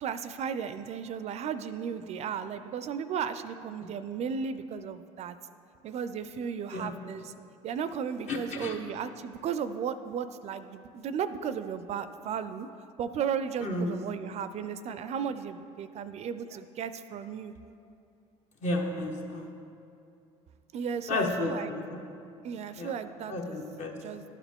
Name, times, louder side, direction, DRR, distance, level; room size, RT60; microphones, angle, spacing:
voice 1, 0.0-5.4 5.8-7.3 7.6-12.7 13.0-17.5 20.7-21.7 22.4-23.6 24.0-24.2, right 7 dB, 50° right, 12 dB, 0.4 m, -35 dB
voice 2, 8.3-8.7 13.6-13.9 18.6-19.5 21.1-22.0 22.8-22.9 23.3-23.9, left 2 dB, 50° left, 2 dB, 1.1 m, -32 dB
11.5 x 4.9 x 3.5 m, 2.6 s
hypercardioid pair, 75°, 15 cm